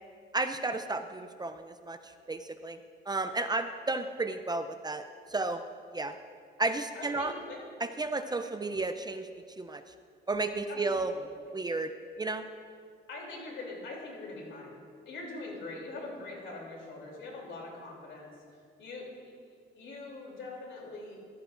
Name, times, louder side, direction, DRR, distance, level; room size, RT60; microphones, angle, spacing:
voice 1, 0.3-2.8 3.1-5.0 5.3-5.6 5.9-6.1 6.6-7.3 8.0-9.3 9.6-9.8 10.3-11.1 11.5-11.9 12.2-12.4, right 3 dB, 20° right, 8 dB, 0.5 m, -32 dB
voice 2, 6.9-7.6 10.7-11.3 13.1-14.8 15.0-18.4 18.8-19.0 19.8-21.2, left 2 dB, 70° left, -2 dB, 3.1 m, -43 dB
14.0 x 13.0 x 2.6 m, 2.2 s
cardioid pair, 90°, 20 cm